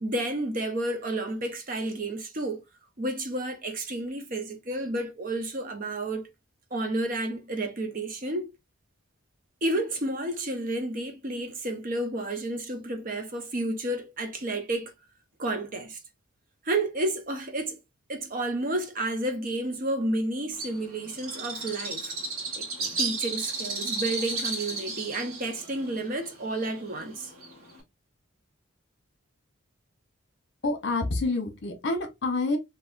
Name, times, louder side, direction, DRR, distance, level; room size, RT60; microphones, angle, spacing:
voice 1, 0.0-2.6 3.0-6.3 6.7-8.5 9.6-14.9 15.4-16.0 16.6-17.8 18.1-22.1 22.5-22.7 23.0-27.3, right 1 dB, 40° right, 0.7 m, -31 dB
Bird, 20.6-27.8, right 3 dB, 85° right, 1.5 m, -34 dB
voice 2, 30.6-32.6, left 2 dB, 55° left, 1.0 m, -27 dB
3.4 x 2.8 x 2.5 m
head